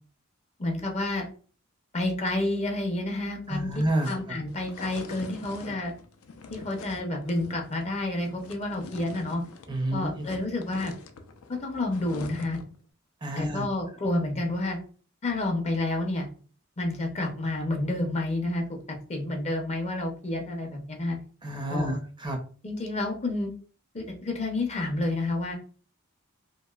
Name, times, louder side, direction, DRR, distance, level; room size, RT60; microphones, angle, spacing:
voice 1, 0.6-1.3 1.9-3.7 4.0-5.9 6.5-9.4 9.9-11.0 11.5-12.6 13.4-14.8 15.2-16.3 16.8-21.2 21.7-22.0 22.6-23.5 23.9-25.5, left 2 dB, 30° left, 2 dB, 0.5 m, -29 dB
sound 1, 3.4-9.8 10.0-12.8, left 4 dB, 90° left, 0.4 m, -45 dB
voice 2, 3.5-4.1 9.7-10.3 13.2-13.6 21.4-22.4, right 1 dB, 20° right, 3 dB, 0.4 m, -29 dB
2.9 x 2.5 x 2.3 m, 0.41 s
head